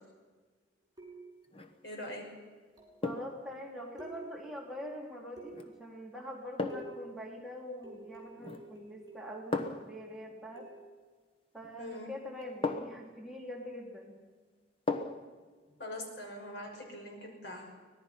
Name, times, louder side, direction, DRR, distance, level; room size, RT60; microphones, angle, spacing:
sound 1, 1.0-1.5 2.8-3.1 4.0-4.6 5.4-5.9 6.7-7.2 7.8-9.5 10.6-11.0 12.4-12.6, right 2 dB, 20° right, 6.8 m, -50 dB
sound 2, 1.4-1.8 3.0-3.4 5.5-5.7 6.6-7.0 8.4-8.8 9.5-10.0 11.6-11.7 12.6-13.1 14.9-15.3 15.7-15.8, left 3 dB, 30° left, 1.2 m, -36 dB
voice 1, 1.8-2.2 11.8-12.1 15.8-17.7, left 1 dB, 65° left, 1 dB, 5.7 m, -43 dB
voice 2, 3.0-10.7 11.5-14.2, equal, ahead, -2 dB, 2.8 m, -44 dB
24.5 x 18.5 x 5.8 m, 1.4 s
head